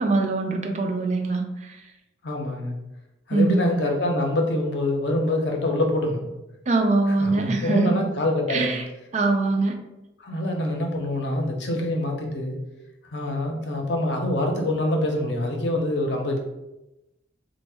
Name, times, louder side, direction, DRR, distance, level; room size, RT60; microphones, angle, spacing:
voice 1, 0.0-1.8 3.3-3.6 6.7-8.0 8.5-8.9 9.1-9.8, right 3 dB, 40° right, 3 dB, 0.4 m, -23 dB
voice 2, 2.2-2.8 3.3-6.3 7.1-8.7 10.2-12.6 13.1-16.4, left 1 dB, 65° left, 2 dB, 0.6 m, -25 dB
3.5 x 2.1 x 3.3 m, 0.94 s
head